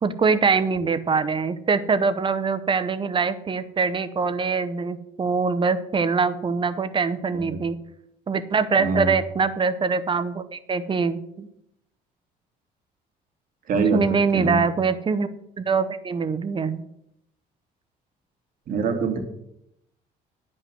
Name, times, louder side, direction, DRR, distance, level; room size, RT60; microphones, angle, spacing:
voice 1, 0.0-7.8 8.3-11.5 13.9-15.3 15.6-16.8, right 5 dB, 30° right, 13 dB, 0.8 m, -23 dB
voice 2, 8.8-9.1 13.7-14.0 14.3-14.6 18.7-19.2, right 4 dB, 55° right, 4 dB, 2.3 m, -24 dB
10.5 x 5.5 x 7.6 m, 0.78 s
cardioid pair, 110°, 17 cm